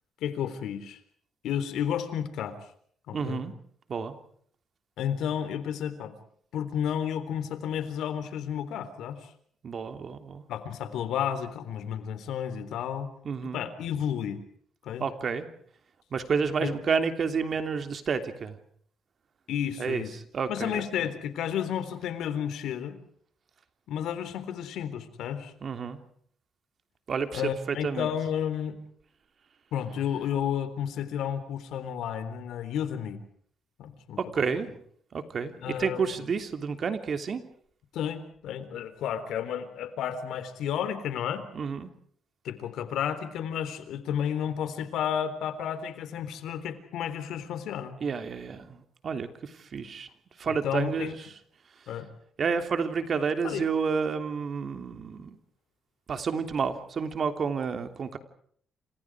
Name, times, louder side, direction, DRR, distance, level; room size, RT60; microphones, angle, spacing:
voice 1, 0.2-1.0 1.4-2.6 3.1-3.4 5.0-6.1 6.5-9.3 10.5-13.1 13.5-14.4 14.8-15.0 16.6-16.7 19.5-20.1 20.5-23.0 23.9-25.5 27.3-28.8 29.7-33.2 33.8-34.2 35.6-36.1 37.9-41.4 42.4-48.0 50.5-51.1 51.9-52.1 53.4-53.7, left 9 dB, 80° left, 11 dB, 3.7 m, -32 dB
voice 2, 3.1-3.5 3.9-4.1 9.6-10.4 13.2-13.7 15.0-15.5 16.1-18.6 19.8-21.1 25.6-26.0 27.1-28.1 34.2-34.7 35.1-37.4 41.5-41.9 48.0-50.1 50.4-51.3 51.8-51.9 52.4-55.4 56.1-58.2, right 5 dB, 50° right, 8 dB, 3.1 m, -30 dB
29.5 x 26.5 x 4.9 m, 0.62 s
cardioid pair, 90°, 0 cm